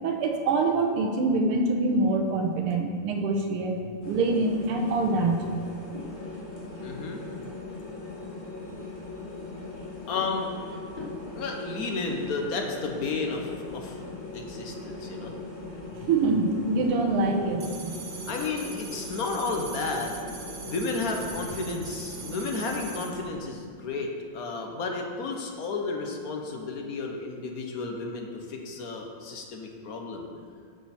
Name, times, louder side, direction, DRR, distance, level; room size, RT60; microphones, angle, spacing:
voice 1, 0.0-3.8 4.1-5.4 16.1-18.0, right 3 dB, 85° right, 3 dB, 1.8 m, -25 dB
sound 1, 4.0-23.4, left 3 dB, 25° left, 1.3 m, -40 dB
voice 2, 6.8-7.2 10.1-10.5 11.3-15.3 18.3-20.2 20.7-30.3, left 3 dB, 55° left, 1 dB, 1.1 m, -32 dB
sound 2, 17.6-23.1, right 6 dB, 60° right, 1.0 m, -42 dB
10.5 x 6.1 x 4.3 m, 2.2 s
omnidirectional pair, 2.4 m